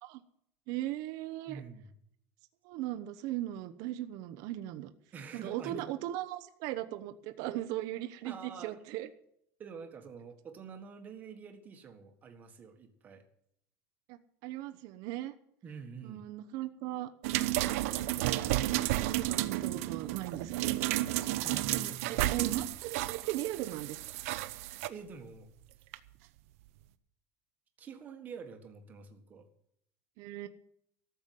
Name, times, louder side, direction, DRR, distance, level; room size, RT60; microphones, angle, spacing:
voice 1, 0.7-1.6 2.6-4.9 5.4-9.1 14.1-15.3 16.0-17.1 17.6-17.8 18.1-18.5 19.0-20.9 21.7-24.0 30.2-30.5, right 14 dB, 50° right, 8 dB, 0.9 m, -38 dB
voice 2, 1.5-1.9 5.1-5.9 8.2-8.8 9.6-13.3 15.6-16.3 21.4-22.3 24.9-25.5 27.8-29.5, right 6 dB, 20° right, 6 dB, 1.6 m, -47 dB
sound 1, 17.2-24.9 25.9-26.0, right 16 dB, 80° right, 0.8 m, -32 dB
13.5 x 7.2 x 9.2 m, 0.72 s
cardioid pair, 175°, 8 cm